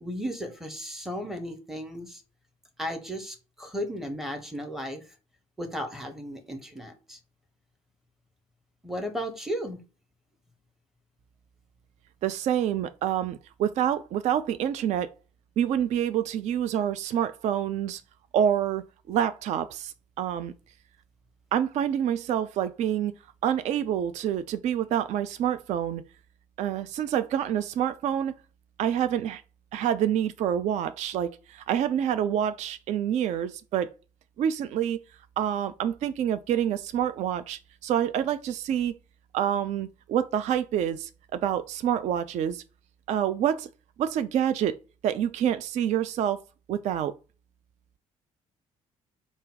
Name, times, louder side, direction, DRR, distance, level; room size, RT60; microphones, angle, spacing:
voice 1, 0.0-2.2 2.8-5.0 5.6-7.2 8.8-9.8, equal, ahead, 1.1 m, -35 dB
voice 2, 12.2-15.1 15.6-18.0 18.3-20.5 21.5-23.1 23.4-26.0 26.6-28.4 28.8-29.4 29.7-33.9 34.4-35.0 35.4-38.9 39.3-42.6 43.1-43.7 44.0-44.8 45.0-46.4 46.7-47.1, right 10 dB, 40° right, 0.4 m, -27 dB
3.8 x 2.4 x 3.9 m
figure-of-eight pair, 50°, 19 cm